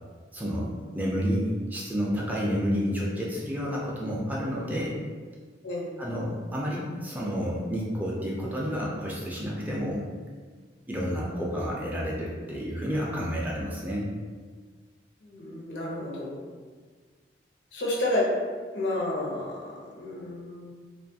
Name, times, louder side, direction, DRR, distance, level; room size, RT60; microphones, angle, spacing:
voice 1, 0.3-0.7 0.9-4.9 6.0-10.0 10.9-14.1, equal, 10° right, -4 dB, 0.3 m, -30 dB
voice 2, 15.2-16.4 17.7-18.4 18.7-20.7, left 1 dB, 85° left, -4 dB, 0.7 m, -30 dB
2.5 x 2.3 x 2.6 m, 1.5 s
head